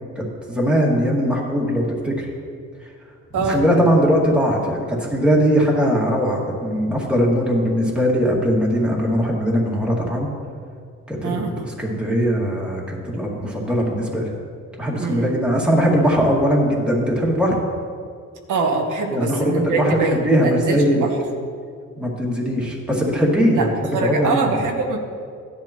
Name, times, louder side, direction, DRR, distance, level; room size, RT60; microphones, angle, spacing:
voice 1, 0.2-2.3 3.3-10.3 11.1-14.3 14.8-17.6 19.1-21.1 22.0-23.7 24.0-24.6, equal, 5° right, -4 dB, 2.0 m, -20 dB
voice 2, 11.2-11.6 15.0-15.3 18.5-21.1 23.5-23.7 23.9-25.0, right 4 dB, 75° right, 1 dB, 1.4 m, -23 dB
16.0 x 10.5 x 3.0 m, 2.2 s
cardioid pair, 155°, 31 cm